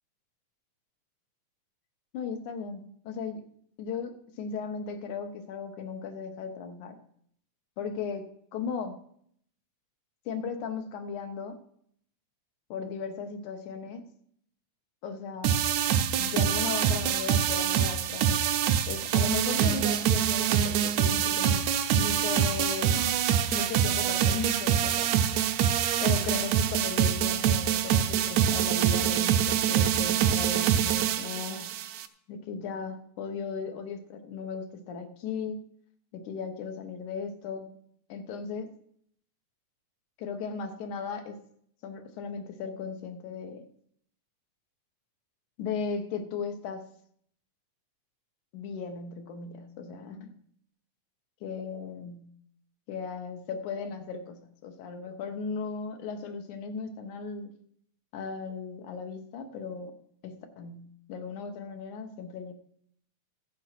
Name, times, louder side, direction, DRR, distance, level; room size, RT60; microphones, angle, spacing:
voice 1, 2.1-3.4 3.8-7.0 7.8-9.0 10.3-11.6 12.7-14.0 15.0-15.5 16.2-18.5 18.8-21.6 21.9-23.2 23.5-25.2 26.0-31.8 32.3-35.6 36.1-37.7 38.1-38.7 40.2-41.4 41.8-43.7 45.6-46.8 48.5-50.3 51.4-52.3 52.9-57.5 58.1-62.5, left 5 dB, 85° left, 6 dB, 2.5 m, -36 dB
sound 1, 15.4-32.1, right 9 dB, 75° right, 1.9 m, -25 dB
15.0 x 6.3 x 5.8 m, 0.67 s
omnidirectional pair, 3.4 m